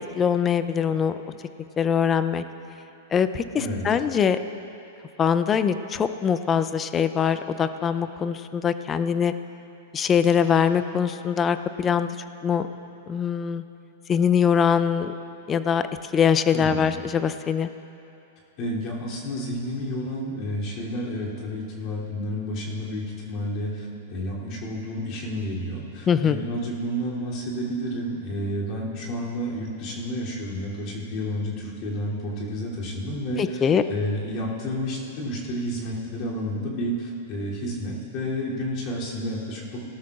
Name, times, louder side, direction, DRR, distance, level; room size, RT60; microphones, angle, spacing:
voice 1, 0.0-1.4 1.8-2.4 3.1-4.4 5.2-9.3 9.9-12.1 12.4-12.7 13.1-13.6 14.1-15.1 15.5-15.8 16.1-17.7 26.1-26.4 33.4-33.8, left 7 dB, 25° left, 11 dB, 0.5 m, -23 dB
voice 2, 16.5-16.8 18.6-39.8, equal, 45° left, -5 dB, 3.0 m, -30 dB
18.0 x 12.5 x 2.5 m, 2.8 s
hypercardioid pair, 110°, 0 cm